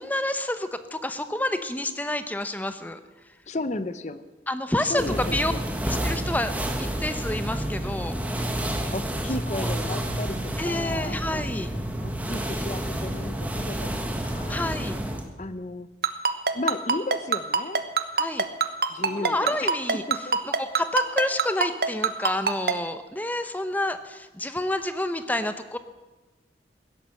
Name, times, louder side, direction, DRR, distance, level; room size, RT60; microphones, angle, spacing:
voice 1, 0.0-3.0 4.5-5.5 5.9-8.5 9.5-9.7 10.6-11.7 14.5-15.0 18.2-18.5 19.1-20.0 20.4-25.8, left 1 dB, 10° left, 10 dB, 0.8 m, -29 dB
voice 2, 3.5-4.2 4.8-5.6 8.9-11.4 12.0-14.6 15.4-15.9 16.5-17.8 18.9-20.4, left 2 dB, 40° left, 13 dB, 0.7 m, -34 dB
sound 1, 5.0-15.3, right 1 dB, 10° right, 1.4 m, -29 dB
Ringtone, 16.0-22.7, right 5 dB, 60° right, 1.1 m, -22 dB
16.5 x 11.5 x 7.7 m, 1.2 s
head